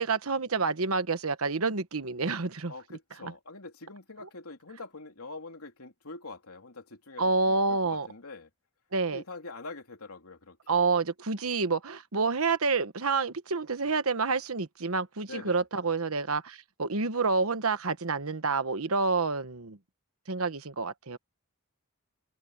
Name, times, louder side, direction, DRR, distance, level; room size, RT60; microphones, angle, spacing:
voice 1, 0.0-2.7 3.2-3.3 4.2-4.3 7.2-8.1 8.9-9.2 10.7-19.8 20.3-21.2, right 4 dB, 75° right, 1.2 m, -28 dB
voice 2, 2.7-8.5 9.1-10.8 15.3-15.6, left 3 dB, 85° left, 3.4 m, -44 dB
open air
head